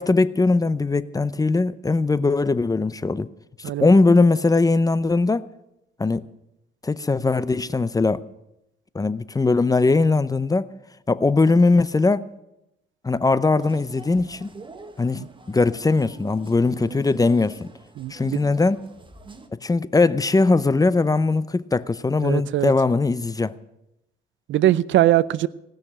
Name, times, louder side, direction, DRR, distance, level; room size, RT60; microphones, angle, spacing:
voice 1, 0.0-3.3 3.8-5.5 6.0-6.2 6.8-8.2 8.9-10.7 11.1-12.2 13.0-14.5 15.0-17.7 18.1-18.8 19.6-23.5, left 3 dB, 20° left, 0.6 m, -20 dB
sound 1, 13.6-19.5, right 3 dB, 25° right, 1.4 m, -44 dB
voice 2, 18.0-18.4 22.2-22.7 24.5-25.5, right 13 dB, 75° right, 0.6 m, -21 dB
18.0 x 6.5 x 10.0 m
cardioid pair, 90°, 20 cm